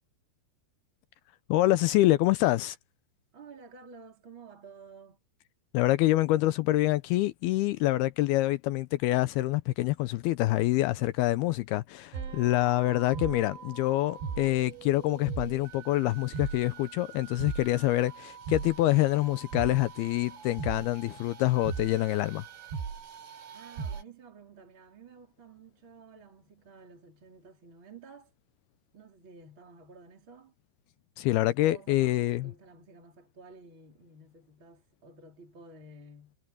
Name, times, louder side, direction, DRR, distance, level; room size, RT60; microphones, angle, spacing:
voice 1, 1.5-2.8 5.7-22.4 31.2-32.5, left 16 dB, 80° left, 2.3 m, -26 dB
voice 2, 3.3-5.2 23.5-28.3 28.9-30.5 31.6-36.4, right 4 dB, 30° right, 4.2 m, -52 dB
sound 1, 12.1-24.0, right 6 dB, 75° right, 5.8 m, -40 dB
omnidirectional pair, 5.0 m